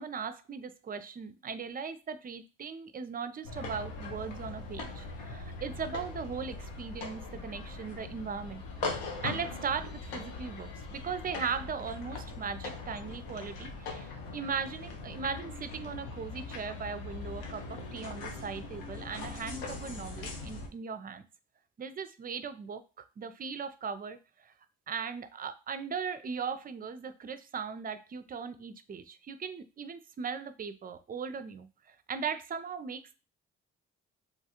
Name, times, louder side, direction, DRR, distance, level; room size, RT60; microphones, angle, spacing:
voice 1, 0.0-21.2 21.8-22.8 23.2-24.5 24.9-33.1, right 6 dB, 30° right, 11 dB, 0.4 m, -38 dB
sound 1, 3.4-20.7, left 3 dB, 90° left, 0.6 m, -41 dB
3.0 x 2.3 x 2.8 m, 0.32 s
hypercardioid pair, 50°, 32 cm